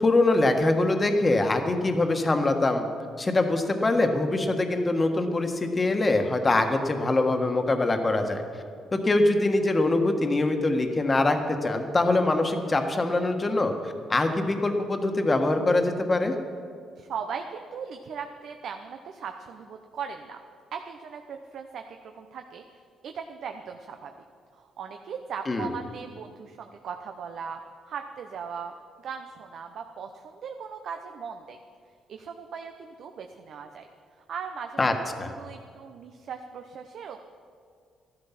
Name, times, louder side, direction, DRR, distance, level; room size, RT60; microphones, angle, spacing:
voice 1, 0.0-2.9 3.2-8.4 8.9-16.3 25.5-25.7 34.8-34.9 35.2-35.3, left 2 dB, 25° left, 5 dB, 1.4 m, -23 dB
voice 2, 17.0-20.4 20.7-22.6 23.0-24.1 24.5-27.6 27.9-28.7 29.0-31.6 32.1-33.9 34.3-35.1 35.4-37.2, right 6 dB, 65° right, 5 dB, 0.8 m, -38 dB
13.5 x 12.0 x 5.9 m, 2.2 s
cardioid pair, 90°, 0 cm